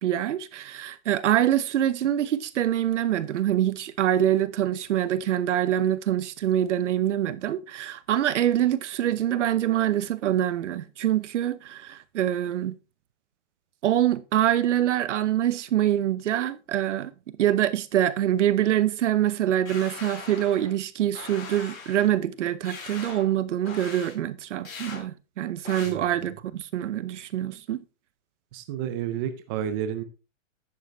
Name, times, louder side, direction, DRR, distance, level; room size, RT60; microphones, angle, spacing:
voice 1, 0.0-12.8 13.8-17.1 17.4-27.8, right 11 dB, 60° right, 0.9 m, -25 dB
sound 1, 19.7-20.8 21.2-22.1 22.7-23.3 23.7-24.1 24.7-25.0 25.7-25.9, left 5 dB, 85° left, 4.7 m, -40 dB
voice 2, 25.9-26.2 28.5-30.0, right 9 dB, 15° right, 0.5 m, -31 dB
10.5 x 7.9 x 3.3 m
hypercardioid pair, 155°, 40 cm